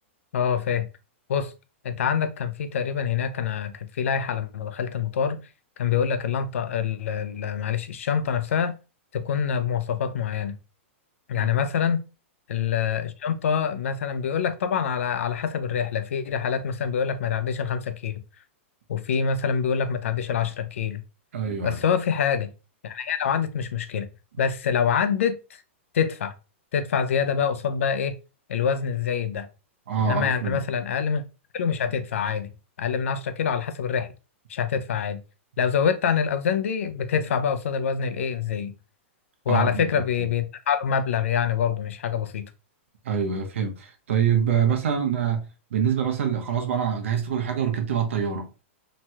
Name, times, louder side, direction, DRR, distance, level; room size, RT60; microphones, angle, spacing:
voice 1, 0.3-0.9 1.3-1.5 1.8-5.4 5.8-8.7 9.1-10.5 11.3-12.0 12.5-18.2 18.9-21.0 21.6-22.5 22.8-24.1 24.4-25.6 25.9-26.3 26.7-28.2 28.5-29.5 30.0-31.2 31.5-32.5 32.8-34.1 34.5-35.2 35.6-38.7 39.5-42.4, left 7 dB, 90° left, 0.4 m, -25 dB
voice 2, 21.3-21.8 29.9-30.6 39.5-39.8 43.0-48.5, right 7 dB, 75° right, 0.8 m, -25 dB
2.9 x 2.2 x 2.8 m
supercardioid pair, 175°, 7 cm